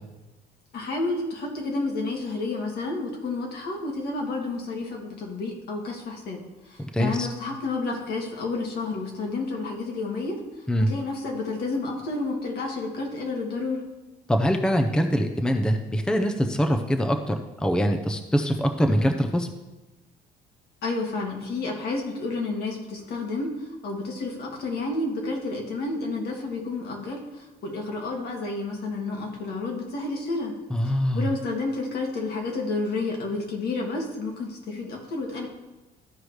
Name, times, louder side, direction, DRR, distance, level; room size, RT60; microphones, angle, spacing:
voice 1, 0.7-10.4 10.8-13.9 20.8-30.6 30.8-35.5, left 3 dB, 70° left, 0 dB, 1.8 m, -30 dB
voice 2, 6.9-7.3 10.7-10.9 14.3-19.5 30.7-31.2, equal, 5° left, 5 dB, 0.6 m, -23 dB
13.5 x 4.8 x 3.2 m, 1.1 s
cardioid pair, 110°, 17 cm